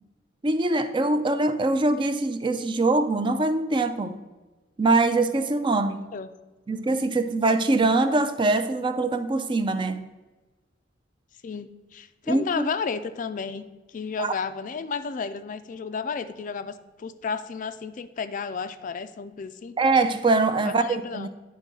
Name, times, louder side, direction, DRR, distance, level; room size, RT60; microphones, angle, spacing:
voice 1, 0.4-4.2 4.8-6.0 6.7-10.1 12.3-12.6 14.2-14.3 19.8-21.3, right 2 dB, 25° right, 10 dB, 0.4 m, -23 dB
voice 2, 11.4-19.8 20.6-21.3, left 5 dB, 40° left, 11 dB, 0.3 m, -32 dB
9.7 x 3.6 x 5.3 m, 1.2 s
head